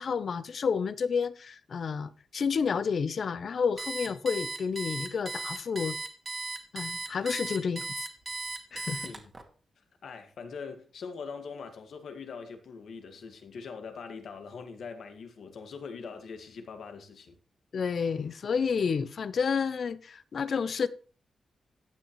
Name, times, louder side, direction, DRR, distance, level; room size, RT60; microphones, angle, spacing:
voice 1, 0.0-6.0 6.7-7.8 8.7-9.1 17.7-20.9, left 6 dB, 55° left, 0.7 m, -30 dB
Alarm, 3.8-9.4, right 3 dB, 25° right, 2.0 m, -36 dB
voice 2, 10.0-17.4, left 5 dB, 70° left, 1.8 m, -42 dB
14.0 x 9.0 x 3.1 m
wide cardioid pair, 130°, 0 cm